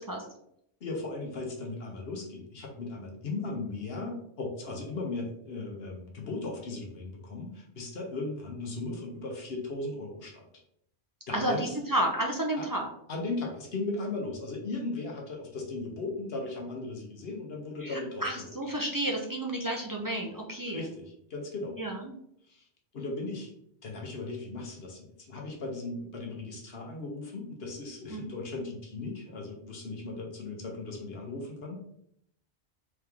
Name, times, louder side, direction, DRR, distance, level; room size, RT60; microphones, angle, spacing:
voice 1, 0.8-10.5 11.3-11.8 12.6-12.7 13.1-18.6 20.7-21.8 22.5-22.7 22.9-23.5 23.8-31.9, left 3 dB, 65° left, 0 dB, 1.1 m, -37 dB
voice 2, 11.3-12.9 17.8-20.8 21.8-22.1 28.1-28.3, right 1 dB, 30° right, -1 dB, 0.4 m, -31 dB
3.6 x 3.2 x 3.4 m, 0.71 s
omnidirectional pair, 1.1 m